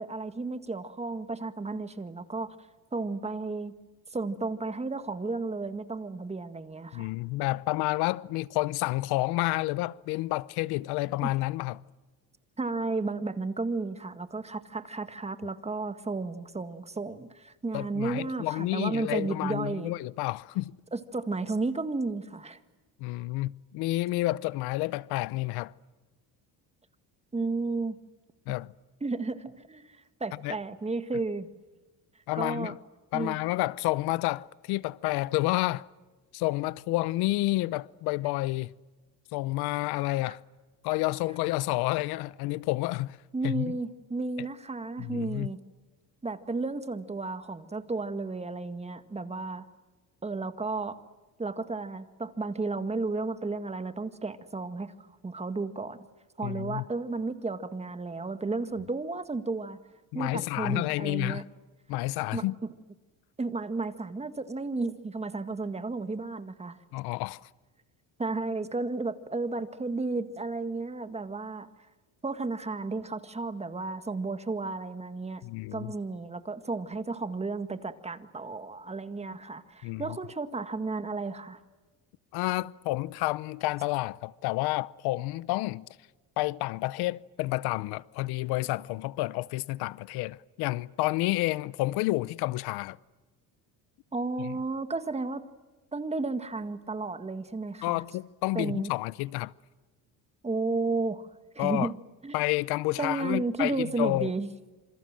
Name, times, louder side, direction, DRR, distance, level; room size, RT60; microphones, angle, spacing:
voice 1, 0.0-2.6 2.9-3.7 4.1-7.1 11.2-11.3 12.6-19.9 20.9-22.6 27.3-28.0 29.0-31.5 32.3-32.7 33.1-33.4 43.3-45.6 46.2-49.7 50.2-51.0 51.4-54.9 55.2-56.0 56.4-59.8 60.1-61.4 62.3-62.4 63.4-66.8 68.2-71.7 72.2-75.4 75.7-81.6 94.1-95.5 95.9-98.0 98.5-99.0 100.4-101.3 101.6-101.9 102.2-102.4 103.0-104.5, right 3 dB, 15° right, 1.8 m, -33 dB
voice 2, 6.9-11.8 17.7-20.7 23.0-25.7 28.5-28.7 30.4-30.5 32.3-32.8 33.1-35.9 36.3-38.7 39.3-40.4 40.8-43.2 43.4-43.7 45.0-45.5 56.4-56.8 60.1-61.4 61.9-62.5 66.9-67.4 75.4-75.9 79.8-80.2 82.3-85.9 86.4-93.0 94.4-94.5 97.8-99.5 101.6-101.9 102.3-104.3, left 19 dB, 90° left, 0.8 m, -30 dB
27.5 x 27.0 x 7.6 m
cardioid pair, 120°, 37 cm